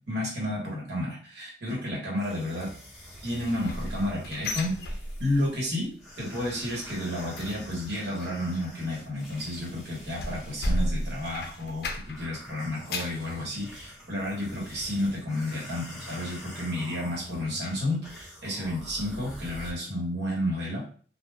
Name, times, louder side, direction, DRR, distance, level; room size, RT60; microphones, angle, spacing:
voice 1, 0.1-2.7 3.2-4.7 5.2-5.9 6.2-20.8, left 1 dB, 70° right, -3 dB, 1.2 m, -31 dB
sound 1, 2.2-19.7, equal, ahead, 0.8 m, -46 dB
sound 2, 3.3-5.6 5.9-6.2 6.5-12.3 12.7-13.3 13.8-13.9 14.3-14.4, left 1 dB, 60° left, 0.4 m, -34 dB
2.3 x 2.2 x 3.3 m, 0.43 s
head